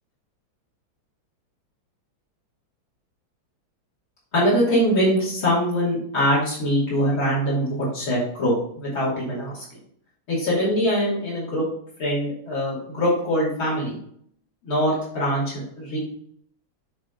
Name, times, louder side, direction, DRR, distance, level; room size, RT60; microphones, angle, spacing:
voice 1, 4.3-9.6 10.3-11.7 12.0-14.0 14.6-16.0, equal, 80° left, -9 dB, 3.7 m, -23 dB
9.7 x 3.5 x 3.9 m, 0.65 s
omnidirectional pair, 2.2 m